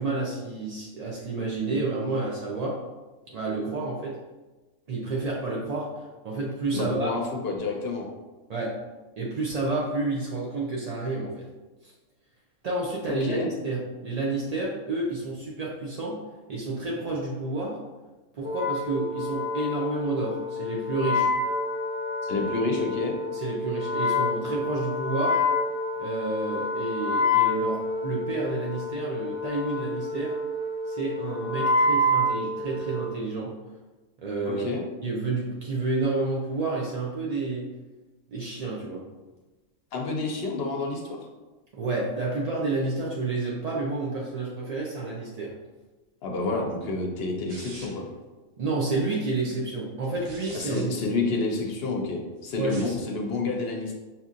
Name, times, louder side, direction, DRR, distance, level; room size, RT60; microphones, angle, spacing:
voice 1, 0.0-2.8 3.3-4.2 4.9-7.2 8.5-8.8 9.2-11.5 11.8-11.9 12.6-16.2 16.5-17.8 18.3-21.3 23.3-25.4 26.0-30.4 30.9-33.5 34.2-34.7 35.0-37.6 38.3-39.0 41.7-45.5 48.6-50.9 52.6-53.0, right 3 dB, 60° right, -4 dB, 0.4 m, -30 dB
voice 2, 6.7-8.1 13.3-13.5 22.2-23.2 34.5-34.8 39.9-41.2 46.2-48.1 50.5-53.9, left 3 dB, 60° left, 1 dB, 0.7 m, -29 dB
Wind instrument woodwind instrument, 18.4-33.2, left 2 dB, 25° left, 0.4 m, -28 dB
sound 1, 47.5-48.1 50.0-50.8 52.6-53.0, right 2 dB, 80° right, 1.4 m, -45 dB
5.8 x 2.7 x 2.4 m, 1.2 s
omnidirectional pair, 1.3 m